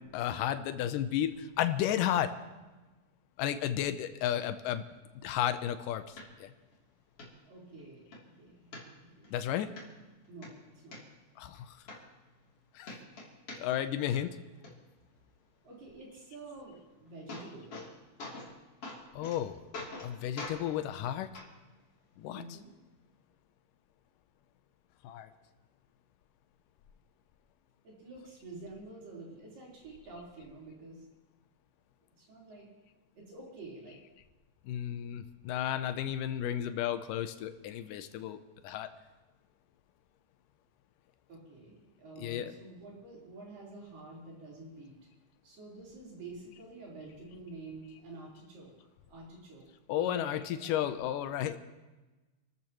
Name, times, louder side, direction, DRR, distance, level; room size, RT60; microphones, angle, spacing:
voice 1, 0.0-2.3 3.4-4.8 5.2-6.5 9.3-9.7 11.4-11.7 12.8-12.9 13.6-14.3 19.1-19.6 20.0-21.3 22.2-22.6 25.0-25.3 34.7-38.4 38.6-38.9 42.2-42.5 49.9-51.6, left 11 dB, 80° left, 10 dB, 2.1 m, -33 dB
sound 1, 6.2-6.3 6.7-6.8 7.2-7.3 7.8-8.2 8.7-9.3 9.8-9.9 10.2-11.0 11.5-11.6 11.9-12.6 12.8-13.9 14.1-14.7 16.7-16.8 17.1-17.9 18.2-18.5 18.8-19.4 19.7-20.1 20.4-20.6 21.3-21.5 22.4-22.5, left 2 dB, 40° left, 3.8 m, -44 dB
voice 2, 7.4-8.0 8.4-8.7 9.2-9.3 10.3-11.0 15.6-17.8 22.3-22.7 27.8-31.0 32.2-32.7 33.1-34.0 41.3-44.9 45.4-48.7 49.1-49.6 50.0-50.8, right 3 dB, 65° right, -4 dB, 5.7 m, -48 dB
28.0 x 13.5 x 3.1 m, 1.2 s
omnidirectional pair, 4.3 m